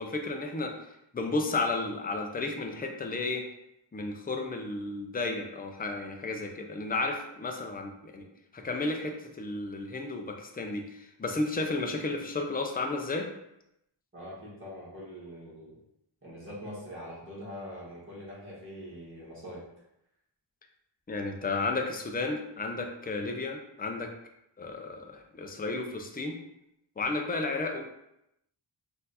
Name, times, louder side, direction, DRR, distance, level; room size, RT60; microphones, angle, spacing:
voice 1, 0.0-3.4 3.9-8.3 8.5-13.3 21.1-24.1 24.6-26.4 27.0-27.8, left 3 dB, 20° left, 3 dB, 0.5 m, -33 dB
voice 2, 14.1-15.8 16.2-19.6, equal, 25° right, -8 dB, 1.6 m, -43 dB
4.2 x 2.6 x 4.1 m, 0.82 s
wide cardioid pair, 125°, 50 cm